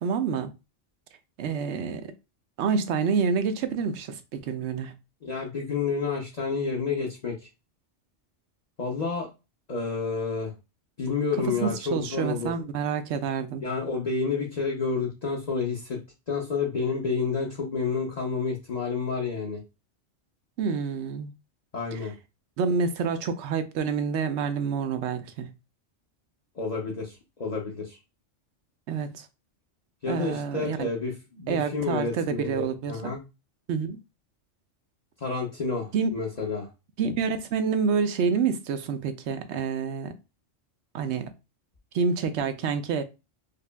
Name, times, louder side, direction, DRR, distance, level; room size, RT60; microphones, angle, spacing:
voice 1, 0.0-0.5 1.4-2.1 2.6-4.9 11.6-13.6 20.6-21.3 21.9-22.1 22.6-25.5 28.9-29.3 30.1-30.9 31.5-33.1 33.7-34.0 35.9-36.1 37.0-40.1 40.9-41.3 41.9-43.0, right 6 dB, 70° right, 0.9 m, -28 dB
voice 2, 5.2-7.3 8.8-9.3 9.7-10.5 11.0-12.5 13.6-16.0 16.3-19.6 21.7-22.1 26.6-28.0 30.0-33.2 35.2-36.7, left 4 dB, 40° left, 0.7 m, -29 dB
5.0 x 2.3 x 2.2 m
omnidirectional pair, 1.2 m